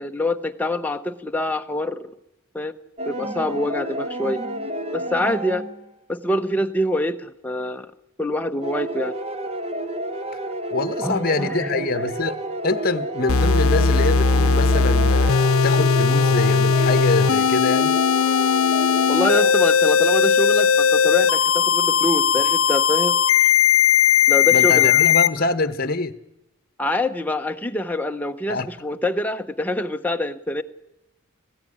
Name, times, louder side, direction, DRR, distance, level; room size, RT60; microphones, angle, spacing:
voice 1, 0.0-2.0 2.5-2.7 3.1-4.4 4.9-5.6 6.1-7.9 8.2-9.1 11.0-11.7 19.1-23.2 24.3-25.0 26.8-30.6, left 1 dB, 10° left, 0.7 m, -25 dB
sound 1, 3.0-5.9 8.6-19.5, right 1 dB, 30° right, 0.8 m, -30 dB
voice 2, 10.7-18.0 24.5-26.1 28.5-28.7, left 3 dB, 45° left, 1.0 m, -25 dB
sound 2, 13.3-25.3, left 6 dB, 80° left, 0.7 m, -18 dB
19.5 x 15.5 x 9.8 m
head